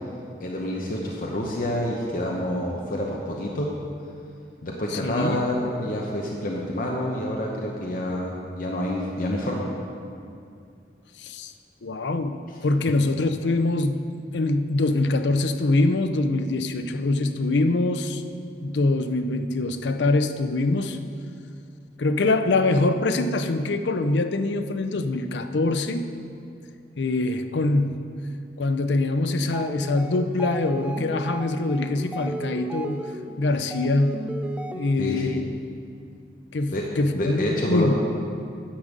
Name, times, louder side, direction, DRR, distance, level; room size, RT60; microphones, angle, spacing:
voice 1, 0.4-3.7 4.6-9.7 12.5-12.6 35.0-35.2 36.7-36.9 37.2-37.9, left 1 dB, 50° left, -2 dB, 0.9 m, -28 dB
voice 2, 4.9-5.4 11.2-11.5 11.8-14.0 14.3-18.2 18.6-21.0 22.0-26.1 27.0-28.1 28.6-33.1 33.4-34.3 34.7-35.4 36.5-37.9, left 2 dB, 85° left, 9 dB, 0.6 m, -24 dB
sound 1, 29.4-35.2, right 1 dB, 5° right, 0.4 m, -36 dB
10.0 x 5.2 x 7.4 m, 2.5 s
head